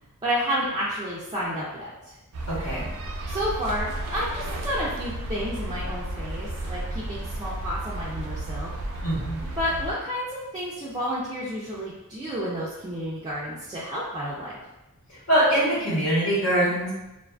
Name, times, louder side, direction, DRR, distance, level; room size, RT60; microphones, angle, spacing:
voice 1, 0.2-2.1 3.3-8.7 9.6-14.5, equal, 20° right, -9 dB, 0.3 m, -30 dB
sound 1, 2.3-9.9, right 1 dB, 85° right, 0.5 m, -33 dB
voice 2, 2.5-2.9 9.0-9.5 15.3-16.9, right 1 dB, 80° left, -9 dB, 1.2 m, -23 dB
2.4 x 2.4 x 2.3 m, 0.98 s
head